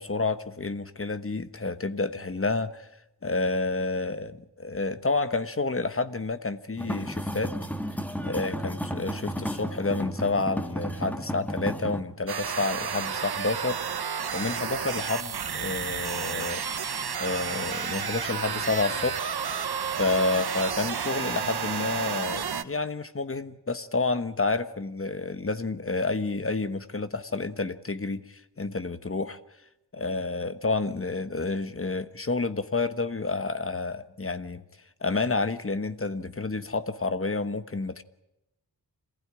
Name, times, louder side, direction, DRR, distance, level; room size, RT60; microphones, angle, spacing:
voice 1, 0.0-2.9 3.2-7.5 8.2-13.8 14.3-16.6 17.2-19.3 19.9-29.4 29.9-34.6 35.0-38.0, left 3 dB, 35° left, 1.2 m, -29 dB
sound 1, 6.8-12.0, equal, 5° left, 1.7 m, -33 dB
sound 2, 12.3-22.6, right 7 dB, 70° right, 1.1 m, -31 dB
27.0 x 16.0 x 9.9 m
wide cardioid pair, 100°, 40 cm